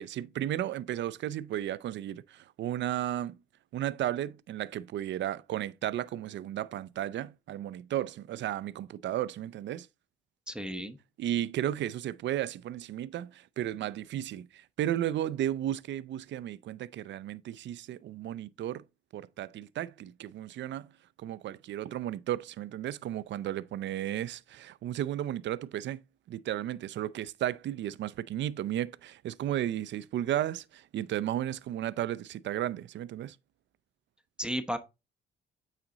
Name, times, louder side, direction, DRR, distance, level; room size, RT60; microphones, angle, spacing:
voice 1, 0.0-3.4 3.7-9.9 11.2-18.9 19.1-20.9 21.2-26.0 26.3-33.4, right 12 dB, 65° right, 0.5 m, -34 dB
voice 2, 10.5-11.0 34.4-34.8, equal, 5° right, 0.9 m, -33 dB
8.9 x 4.2 x 3.9 m
cardioid pair, 90°, 20 cm